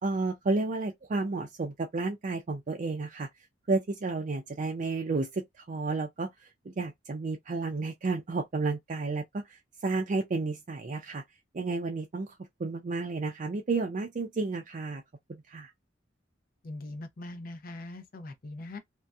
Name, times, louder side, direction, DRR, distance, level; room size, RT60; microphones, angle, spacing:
voice 1, 0.0-3.3 3.7-11.2 11.5-12.3 12.6-15.0 15.5-15.7, right 3 dB, 40° right, 0.4 m, -32 dB
voice 2, 16.6-18.8, left 2 dB, 50° left, 0.6 m, -41 dB
2.6 x 2.1 x 2.2 m
head